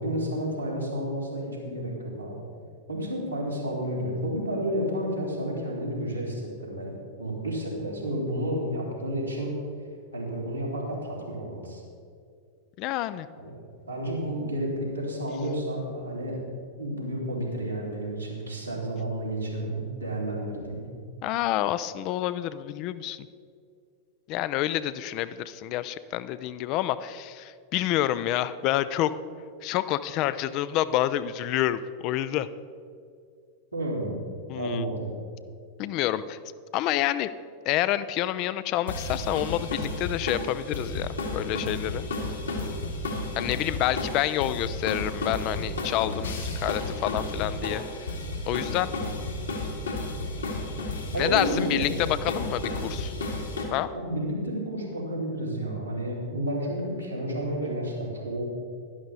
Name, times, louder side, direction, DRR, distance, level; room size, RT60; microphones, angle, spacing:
voice 1, 0.0-2.4 2.9-9.6 10.1-11.8 13.4-13.6 13.9-16.4 16.8-20.8 33.7-34.2 34.5-35.1 51.1-52.0 53.9-58.4, right 1 dB, 90° right, -6 dB, 3.4 m, -31 dB
voice 2, 12.8-13.3 21.2-23.3 24.3-29.1 29.6-32.5 34.5-34.8 35.8-36.4 36.7-37.3 37.7-42.0 43.4-47.8 48.5-48.9 51.2-53.1 53.7-53.9, left 13 dB, 40° left, 14 dB, 0.4 m, -28 dB
sound 1, 38.9-53.6, left 2 dB, 70° left, 2.0 m, -32 dB
11.0 x 11.0 x 4.0 m, 2.2 s
figure-of-eight pair, 90°, 0 cm